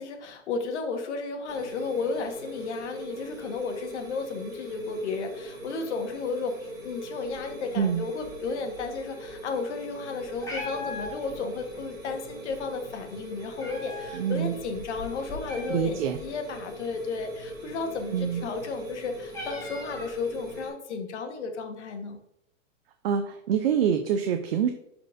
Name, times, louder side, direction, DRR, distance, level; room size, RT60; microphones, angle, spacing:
voice 1, 0.0-22.2, left 4 dB, 60° left, 5 dB, 1.4 m, -33 dB
sound 1, 1.5-20.7, right 1 dB, 10° right, 2.6 m, -41 dB
Meow, 10.2-20.6, left 2 dB, 10° left, 1.3 m, -43 dB
voice 2, 14.1-14.5 15.7-16.2 18.1-18.4 23.0-24.7, right 8 dB, 50° right, 6 dB, 0.6 m, -26 dB
11.5 x 4.4 x 2.6 m, 0.80 s
hypercardioid pair, 155°, 39 cm